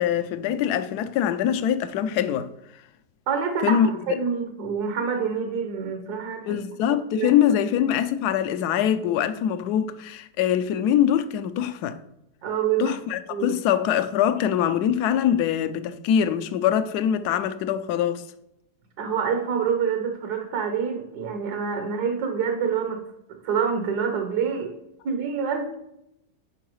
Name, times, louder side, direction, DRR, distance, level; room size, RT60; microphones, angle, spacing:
voice 1, 0.0-2.5 3.6-3.9 6.4-12.0 12.8-18.2, left 9 dB, 70° left, 1.0 m, -23 dB
voice 2, 3.3-6.6 7.1-7.3 12.4-13.0 13.3-13.6 19.0-23.0 23.3-24.7 25.0-25.8, right 6 dB, 65° right, 1.3 m, -27 dB
11.0 x 4.7 x 3.0 m
omnidirectional pair, 1.9 m